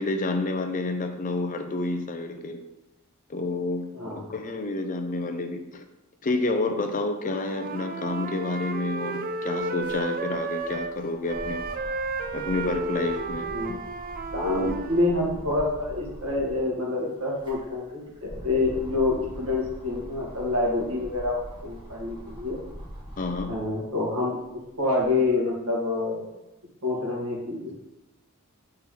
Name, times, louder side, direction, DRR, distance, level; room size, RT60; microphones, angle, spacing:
voice 1, 0.0-2.6 3.3-5.8 6.2-11.6 12.3-13.8 23.2-23.5, left 2 dB, 35° left, 7 dB, 0.5 m, -29 dB
voice 2, 3.9-4.3 13.5-13.8 14.3-22.6 23.5-26.3 26.8-27.8, left 2 dB, 75° right, -3 dB, 2.1 m, -27 dB
Wind instrument woodwind instrument, 7.2-11.0 11.3-15.1, right 3 dB, 40° right, 0.4 m, -33 dB
sound 1, 9.0-16.6 17.1-23.7 24.2-25.3, equal, 20° right, 1.5 m, -43 dB
7.3 x 4.3 x 3.8 m, 0.94 s
head